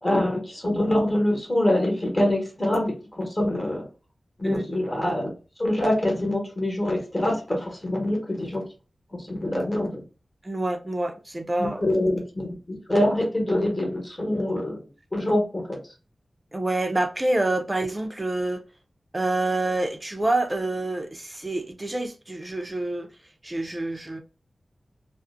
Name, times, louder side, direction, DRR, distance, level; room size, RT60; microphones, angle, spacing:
voice 1, 0.0-3.8 4.4-5.2 5.6-8.6 9.1-10.0 11.6-14.8 15.1-15.8, left 1 dB, 30° left, 1.1 m, -25 dB
voice 2, 10.4-11.9 16.5-18.6 19.1-23.1 23.4-24.2, right 2 dB, 25° right, 0.5 m, -27 dB
2.5 x 2.0 x 2.4 m
wide cardioid pair, 70°, 0 cm